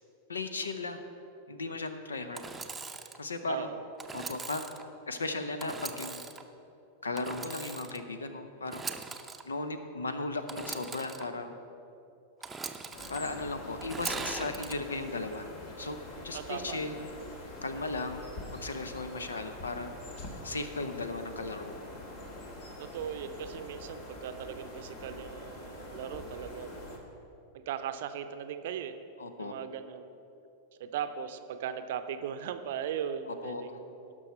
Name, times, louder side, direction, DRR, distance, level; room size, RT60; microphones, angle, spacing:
voice 1, 0.3-1.0 1.5-2.4 3.2-3.7 4.1-4.7 5.1-6.2 7.0-8.9 9.4-11.5 13.1-15.5 15.8-16.0 16.2-17.1 17.6-18.3 18.6-19.9 20.4-21.7 29.2-29.5 33.4-33.6, left 3 dB, 75° left, 9 dB, 0.8 m, -36 dB
Engine / Sawing, 2.3-3.2 4.0-4.8 5.6-6.4 7.2-8.0 8.6-9.4 10.5-11.2 12.4-13.2 13.8-14.8, right 4 dB, 15° right, 0.6 m, -40 dB
voice 2, 3.5-3.8 16.3-16.9 22.8-27.0 27.5-29.0 29.4-30.1 30.8-34.1, right 8 dB, 55° right, 9 dB, 0.6 m, -38 dB
sound 1, 12.9-27.0, left 1 dB, 50° left, 1.7 m, -45 dB
17.5 x 6.3 x 4.4 m, 2.8 s
figure-of-eight pair, 90°, 0 cm